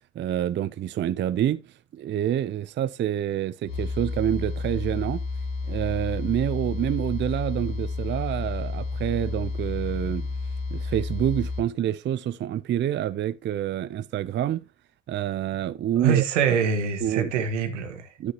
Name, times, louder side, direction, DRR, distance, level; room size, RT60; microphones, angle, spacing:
voice 1, 0.1-1.6 1.9-5.2 5.7-10.3 10.7-14.6 15.1-16.2 17.0-17.3 18.2-18.3, right 11 dB, 30° right, 0.5 m, -27 dB
sound 1, 3.7-11.6, left 3 dB, 70° left, 2.2 m, -31 dB
voice 2, 16.0-18.1, right 7 dB, 80° right, 1.4 m, -24 dB
9.5 x 9.4 x 2.8 m
hypercardioid pair, 65°, 36 cm